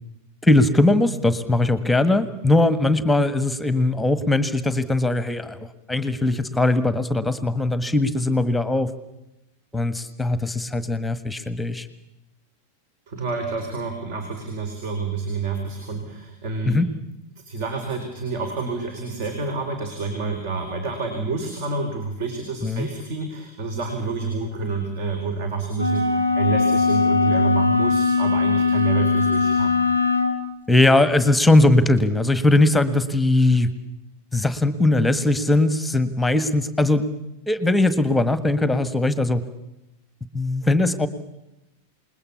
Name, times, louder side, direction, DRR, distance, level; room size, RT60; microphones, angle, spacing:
voice 1, 0.4-8.9 9.7-11.9 16.6-16.9 22.6-22.9 30.7-33.7 34.3-37.1 37.5-39.4 40.3-41.1, left 2 dB, 5° left, 13 dB, 1.6 m, -20 dB
voice 2, 13.1-16.8 17.4-29.8, right 4 dB, 45° right, 6 dB, 4.4 m, -28 dB
sound 1, 25.7-30.4, left 4 dB, 80° right, 3.0 m, -20 dB
28.0 x 21.0 x 7.1 m, 0.91 s
figure-of-eight pair, 90°, 0 cm